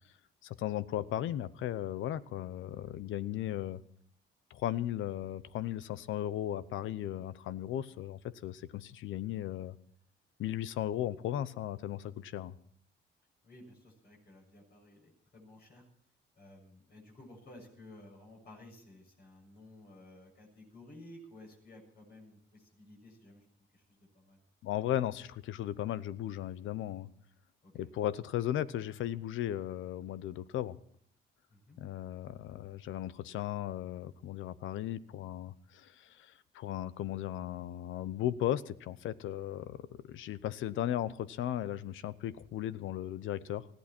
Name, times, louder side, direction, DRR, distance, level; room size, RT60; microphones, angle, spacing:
voice 1, 0.4-3.8 4.5-9.8 10.4-12.5 24.6-27.1 27.7-30.8 31.8-43.7, left 12 dB, 80° left, 16 dB, 0.8 m, -36 dB
voice 2, 13.4-15.9 16.3-23.4 23.7-24.4 27.6-27.9 31.5-31.8, left 1 dB, 55° left, 0 dB, 6.9 m, -55 dB
20.0 x 15.0 x 4.4 m, 0.62 s
cardioid pair, 90°, 20 cm